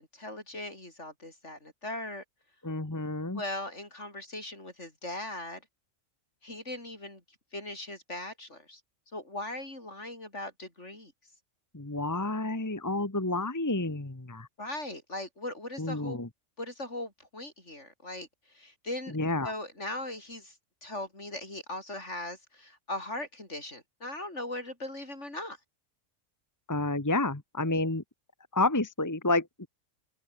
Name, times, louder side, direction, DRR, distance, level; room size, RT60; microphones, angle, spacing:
voice 1, 0.0-2.2 3.3-5.6 6.4-7.2 7.5-8.8 9.1-11.1 14.6-16.2 16.6-19.2 19.4-20.6 20.8-25.6, left 1 dB, 60° left, 7.3 m, -39 dB
voice 2, 2.6-3.4 11.7-14.5 15.8-16.3 19.1-19.5 26.7-28.0 28.5-29.5, left 2 dB, 15° left, 1.4 m, -29 dB
omnidirectional pair, 1.3 m